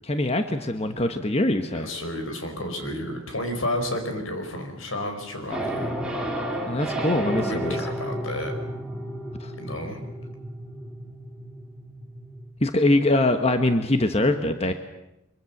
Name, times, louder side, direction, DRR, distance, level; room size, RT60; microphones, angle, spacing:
voice 1, 0.1-1.9 6.7-7.7 9.4-9.5 12.6-14.7, left 1 dB, 30° left, 7 dB, 1.3 m, -23 dB
voice 2, 1.7-5.9 7.4-8.5 9.6-10.0, left 1 dB, 85° left, 6 dB, 4.8 m, -31 dB
sound 1, 5.5-12.5, right 1 dB, 5° right, 3.0 m, -32 dB
24.5 x 23.5 x 7.3 m, 0.89 s
head